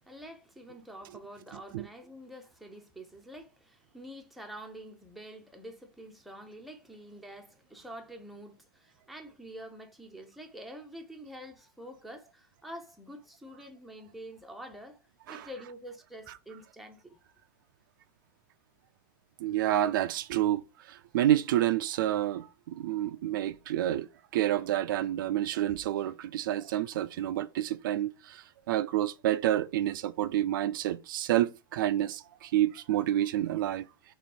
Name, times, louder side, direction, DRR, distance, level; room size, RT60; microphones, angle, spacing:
voice 1, 0.0-15.0 15.3-17.2, equal, ahead, 0.6 m, -47 dB
voice 2, 19.4-24.1 24.3-33.9, right 13 dB, 65° right, 0.4 m, -29 dB
3.1 x 3.1 x 4.2 m
supercardioid pair, 140°, 12 cm